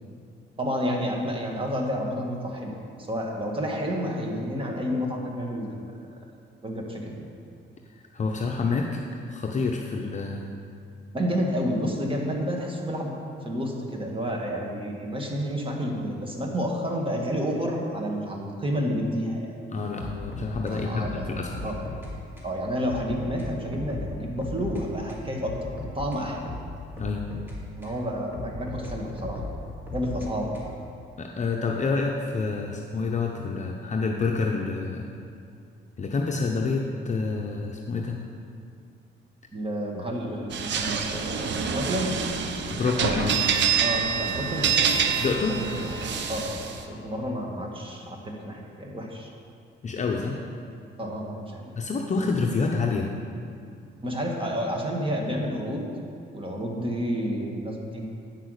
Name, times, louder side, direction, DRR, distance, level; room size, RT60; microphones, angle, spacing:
voice 1, 0.6-2.7 3.1-5.9 6.6-7.3 11.1-13.1 13.4-19.5 20.7-21.9 22.4-26.4 27.8-29.4 29.9-30.6 39.5-42.2 43.8-44.9 45.5-49.3 51.0-51.7 54.0-55.9 56.3-58.1, equal, 25° right, 0 dB, 1.7 m, -30 dB
voice 2, 8.1-9.0 9.3-10.4 19.7-21.7 27.0-27.2 31.2-35.1 36.0-38.2 42.7-43.4 45.2-45.6 49.8-50.4 51.8-53.1, left 4 dB, 35° left, 1 dB, 0.7 m, -28 dB
sound 1, 20.0-22.1 22.4-22.5 22.9-24.8 25.1-28.0 28.3-30.9, left 1 dB, 10° right, 2.3 m, -37 dB
sound 2, 40.5-46.8, right 6 dB, 65° right, 0.8 m, -26 dB
8.9 x 5.9 x 6.5 m, 2.4 s
cardioid pair, 90°, 20 cm